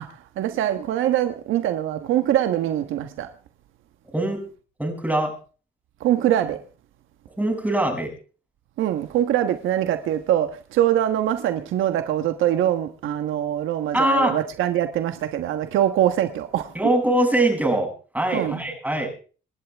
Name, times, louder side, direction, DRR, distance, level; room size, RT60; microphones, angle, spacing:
voice 1, 0.0-3.3 6.0-6.6 8.8-16.7 18.3-18.6, right 11 dB, 85° right, 1.3 m, -23 dB
voice 2, 4.1-4.4 4.8-5.3 7.4-8.1 13.9-14.3 16.7-19.1, right 1 dB, 10° right, 7.6 m, -22 dB
26.5 x 11.5 x 3.5 m
cardioid pair, 90°, 20 cm